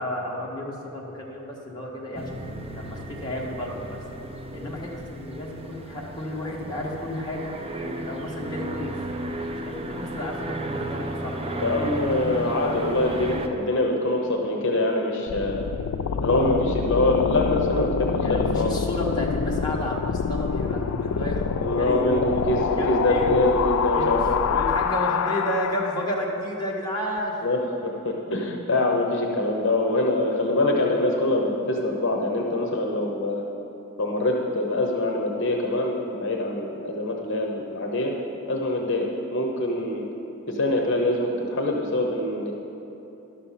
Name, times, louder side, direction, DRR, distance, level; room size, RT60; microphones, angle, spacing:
voice 1, 0.0-4.0 4.5-8.9 9.5-13.0 16.1-16.4 18.2-23.5 23.9-24.1 24.5-27.4, left 1 dB, 20° left, -4 dB, 1.4 m, -32 dB
sound 1, 2.1-13.5, right 1 dB, 25° right, 0.6 m, -34 dB
voice 2, 11.6-15.6 16.2-18.9 21.6-24.4 27.4-33.4 34.0-38.1 38.5-40.1 40.5-42.5, left 2 dB, 55° left, 1 dB, 0.9 m, -24 dB
sound 2, 15.3-26.2, left 6 dB, 85° left, 0.4 m, -26 dB
11.5 x 6.8 x 5.8 m, 3.0 s
head